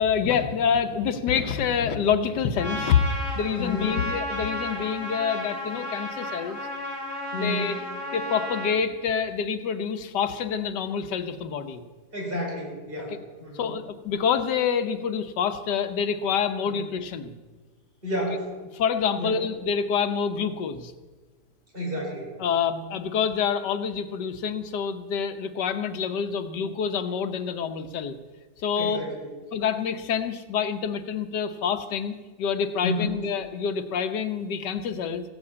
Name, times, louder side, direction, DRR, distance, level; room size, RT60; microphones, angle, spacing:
voice 1, 0.0-3.0 3.4-6.6 7.3-7.7 8.1-11.8 13.1-13.2 13.5-17.3 18.7-20.9 22.4-28.2 28.6-29.0 29.5-35.2, left 7 dB, 85° left, 8 dB, 1.5 m, -27 dB
Trumpet, 2.6-8.8, left 1 dB, 50° left, 4.9 m, -33 dB
voice 2, 3.6-3.9 7.3-7.7 12.1-13.7 16.7-16.8 18.0-18.5 19.2-19.4 21.7-22.3 28.7-29.3 32.8-33.2, left 1 dB, 30° right, -3 dB, 5.1 m, -31 dB
15.5 x 7.7 x 8.5 m, 1.3 s
omnidirectional pair, 1.8 m